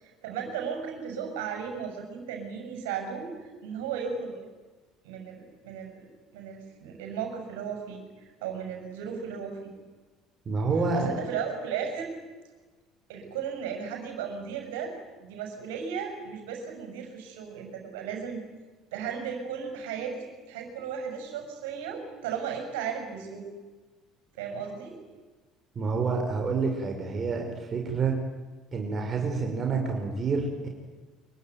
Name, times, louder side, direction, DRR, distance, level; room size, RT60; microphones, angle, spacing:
voice 1, 0.2-4.3 5.0-6.1 6.3-9.7 10.9-12.1 13.1-14.9 15.2-18.4 18.9-23.5 24.4-25.0, right 7 dB, 70° right, 4 dB, 6.5 m, -35 dB
voice 2, 10.5-11.1 25.8-27.4 27.7-28.1 28.7-30.7, right 4 dB, 40° right, 2 dB, 5.4 m, -28 dB
25.5 x 23.0 x 9.3 m, 1.3 s
figure-of-eight pair, 60°, 0 cm